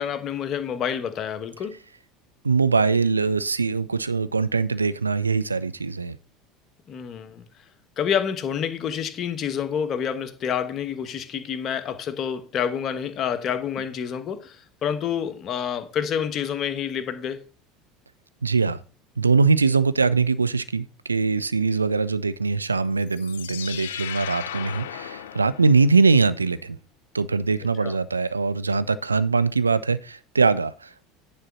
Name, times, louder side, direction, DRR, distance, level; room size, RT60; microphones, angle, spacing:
voice 1, 0.0-1.8 6.9-7.5 8.0-17.4 27.8-28.0, left 8 dB, 40° left, 1.1 m, -28 dB
voice 2, 2.4-6.2 18.4-18.8 19.2-26.8 27.1-31.1, right 4 dB, 85° right, 0.4 m, -22 dB
sound 1, 23.0-26.1, left 11 dB, 70° left, 0.5 m, -36 dB
10.0 x 4.1 x 6.2 m
figure-of-eight pair, 70°, 0 cm